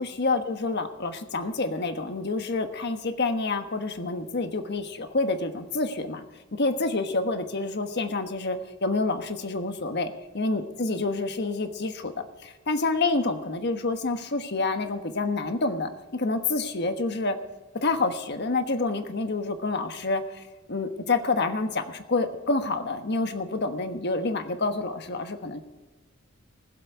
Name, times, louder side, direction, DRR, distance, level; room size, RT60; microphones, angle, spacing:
voice 1, 0.0-6.2 6.6-12.1 12.4-17.4 17.8-20.4 20.7-25.6, left 3 dB, 55° left, 7 dB, 1.3 m, -28 dB
20.0 x 7.7 x 4.6 m, 1.2 s
head